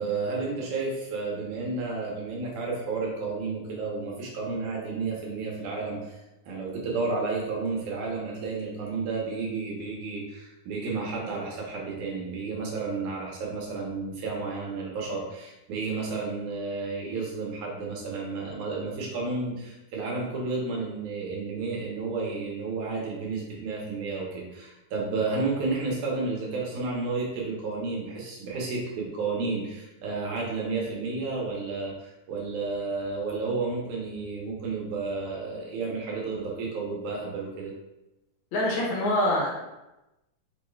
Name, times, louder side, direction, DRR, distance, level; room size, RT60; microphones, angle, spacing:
voice 1, 0.0-37.7, right 3 dB, 90° right, -2 dB, 2.4 m, -31 dB
voice 2, 38.5-39.6, left 1 dB, 75° left, -3 dB, 2.2 m, -25 dB
5.9 x 2.3 x 3.1 m, 0.97 s
omnidirectional pair, 3.3 m